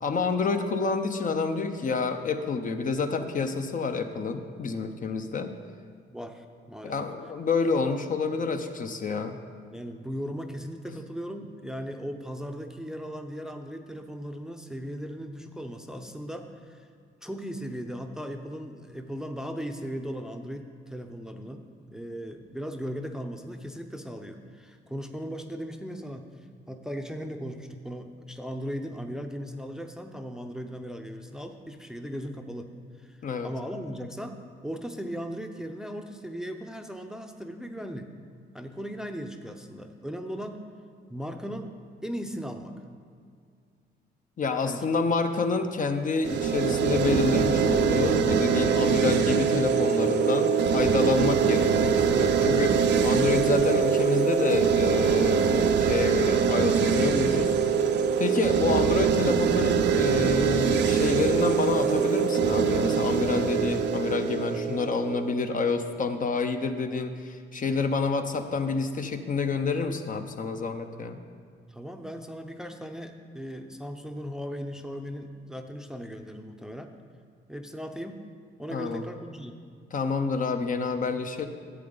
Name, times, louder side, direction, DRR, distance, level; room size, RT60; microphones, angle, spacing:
voice 1, 0.0-5.5 6.8-9.4 33.2-33.5 44.4-57.5 58.2-71.2 78.7-79.0 79.9-81.5, left 4 dB, 40° left, 7 dB, 0.6 m, -28 dB
voice 2, 6.1-7.0 9.7-16.9 17.2-26.3 26.7-32.7 33.0-33.2 33.4-38.1 38.5-40.6 41.1-41.7 42.0-42.8 44.6-44.8 71.7-76.9 77.5-78.2 78.6-79.6, equal, 5° right, 5 dB, 0.6 m, -37 dB
sound 1, 46.2-65.3, right 6 dB, 65° right, 0.5 m, -23 dB
11.0 x 7.8 x 3.9 m, 2.2 s
cardioid pair, 90°, 20 cm